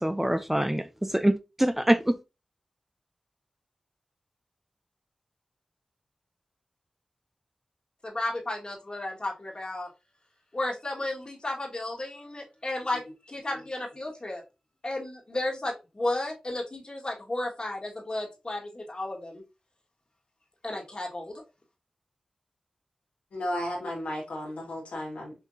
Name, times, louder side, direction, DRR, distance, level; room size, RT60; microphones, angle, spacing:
voice 1, 0.0-2.2, right 1 dB, 10° right, 0.4 m, -25 dB
voice 2, 8.0-9.9 10.5-14.4 14.8-19.4 20.6-21.4, left 2 dB, 40° left, 1.6 m, -33 dB
voice 3, 23.3-25.3, left 1 dB, 90° left, 1.8 m, -33 dB
5.9 x 2.7 x 2.6 m
cardioid pair, 45°, 2 cm